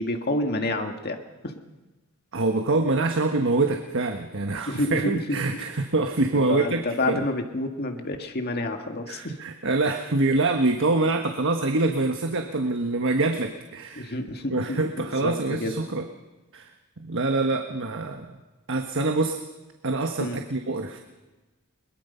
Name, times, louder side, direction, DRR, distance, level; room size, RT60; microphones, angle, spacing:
voice 1, 0.0-1.5 4.7-5.2 6.3-9.3 14.0-14.8 15.2-15.8 20.2-20.4, left 1 dB, 45° left, 4 dB, 1.9 m, -29 dB
voice 2, 2.3-7.2 9.1-14.1 14.5-16.0 16.5-16.7 17.0-18.4 18.7-19.4 19.8-21.0, right 2 dB, 60° right, 5 dB, 1.3 m, -25 dB
22.0 x 22.0 x 5.7 m, 1.1 s
head